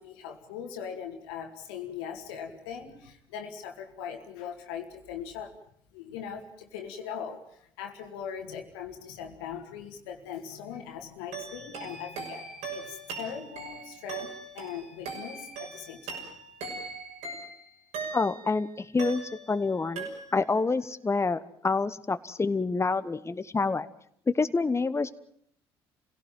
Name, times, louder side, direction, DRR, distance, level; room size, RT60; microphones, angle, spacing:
voice 1, 0.0-5.5 5.9-16.3, left 7 dB, 80° left, 4 dB, 2.2 m, -40 dB
sound 1, 11.3-18.6 19.0-19.7 20.0-20.6, right 4 dB, 70° right, 6.3 m, -40 dB
voice 2, 18.1-19.2 19.5-23.9 24.3-25.1, left 4 dB, 20° left, 13 dB, 1.2 m, -27 dB
27.0 x 17.0 x 7.6 m, 0.66 s
hypercardioid pair, 55°, 13 cm